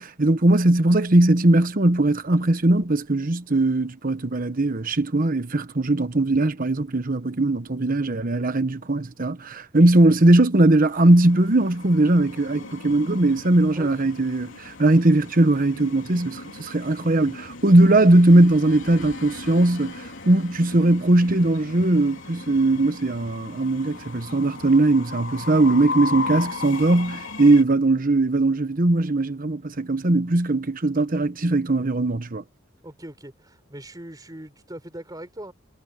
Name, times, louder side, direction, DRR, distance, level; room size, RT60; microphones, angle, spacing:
voice 1, 0.0-32.4, right 2 dB, 45° right, 1.1 m, -19 dB
Train, 10.8-27.6, left 3 dB, 65° left, 3.7 m, -37 dB
voice 2, 32.8-35.5, right 1 dB, 20° right, 4.6 m, -40 dB
head